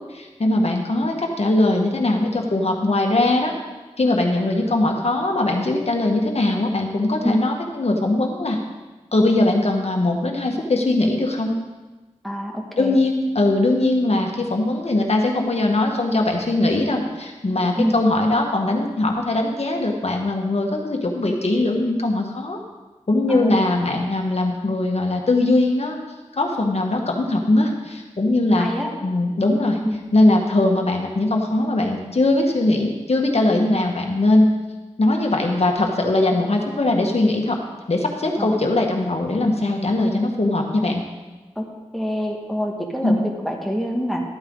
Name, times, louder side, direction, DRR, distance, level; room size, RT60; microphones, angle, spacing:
voice 1, 0.0-3.5 4.0-8.6 9.1-11.6 12.8-22.6 23.1-26.0 26.3-28.7 29.0-29.8 30.1-34.5 35.0-37.6 37.9-41.0 43.0-43.2, left 2 dB, 60° left, 2 dB, 1.7 m, -20 dB
voice 2, 12.2-13.0 17.8-18.0 23.3-23.5 28.6-28.9 29.8-30.0 38.4-38.7 41.6-41.7 41.9-44.2, equal, ahead, 0 dB, 2.1 m, -25 dB
13.5 x 8.8 x 4.0 m, 1.2 s
cardioid pair, 50°, 12 cm